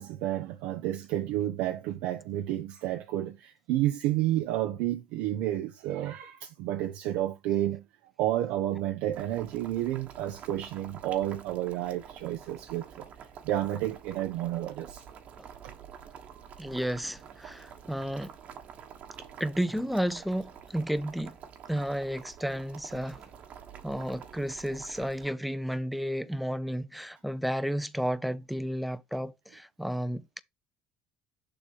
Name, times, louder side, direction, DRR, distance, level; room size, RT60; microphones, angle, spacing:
voice 1, 0.0-7.8 8.2-13.1 13.4-15.0, right 13 dB, 80° right, 0.7 m, -31 dB
Boiling, 9.1-25.3, right 8 dB, 55° right, 1.3 m, -48 dB
voice 2, 16.6-18.3 19.4-21.4 21.7-23.2 23.8-30.4, equal, ahead, 0.6 m, -32 dB
6.9 x 3.4 x 5.4 m
supercardioid pair, 95°, 3 cm